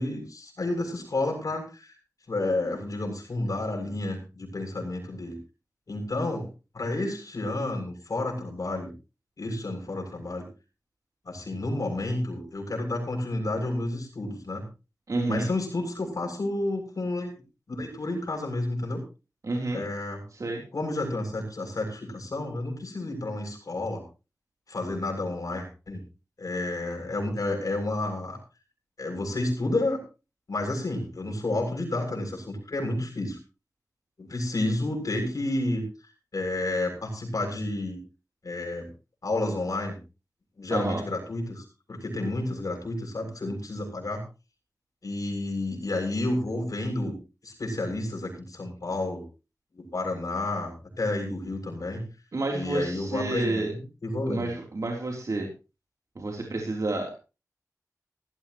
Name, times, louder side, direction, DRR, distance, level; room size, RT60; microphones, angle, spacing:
voice 1, 0.0-1.9 2.3-5.4 5.9-6.5 6.7-8.9 9.4-10.5 11.3-14.6 15.3-17.3 17.7-19.0 19.7-20.2 20.7-24.0 24.7-26.0 26.4-28.4 29.0-30.0 30.5-33.4 34.2-35.8 36.3-38.0 38.4-38.9 39.2-40.0 40.6-44.2 45.0-47.2 47.4-49.2 49.7-52.0 52.5-54.5, left 2 dB, 75° left, 1 dB, 7.0 m, -30 dB
voice 2, 15.1-15.5 19.4-19.8 20.3-20.6 40.7-41.0 52.3-53.7 54.3-55.5 56.2-57.2, right 2 dB, 65° right, 0 dB, 3.5 m, -29 dB
18.0 x 15.0 x 3.1 m, 0.32 s
wide cardioid pair, 75°, 6 cm